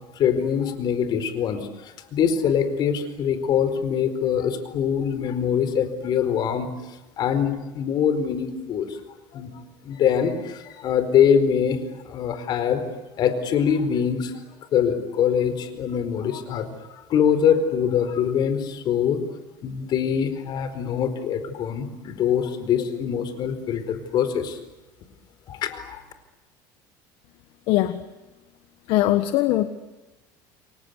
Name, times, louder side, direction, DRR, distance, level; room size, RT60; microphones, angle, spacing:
voice 1, 0.1-6.7 7.2-9.0 9.3-9.5 9.8-11.8 12.0-12.8 13.2-14.4 14.7-16.7 17.1-19.2 19.6-24.6 25.5-26.0, left 8 dB, 50° left, 10 dB, 4.5 m, -23 dB
voice 2, 27.7-28.0 28.9-29.7, left 15 dB, 65° left, 10 dB, 1.5 m, -21 dB
29.5 x 23.5 x 8.3 m, 1.1 s
cardioid pair, 125°, 9 cm